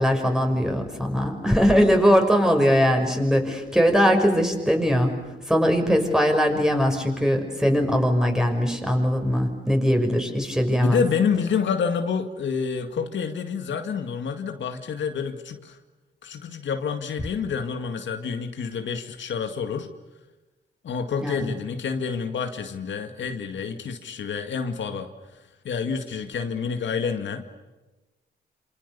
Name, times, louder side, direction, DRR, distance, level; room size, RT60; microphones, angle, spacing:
voice 1, 0.0-5.1 5.5-11.0 21.2-21.4, equal, 5° right, 3 dB, 6.1 m, -21 dB
voice 2, 10.7-15.8 16.2-19.9 20.8-25.1 25.6-27.4, left 6 dB, 80° left, 6 dB, 2.1 m, -28 dB
28.0 x 27.5 x 7.0 m, 1.1 s
cardioid pair, 85°, 19 cm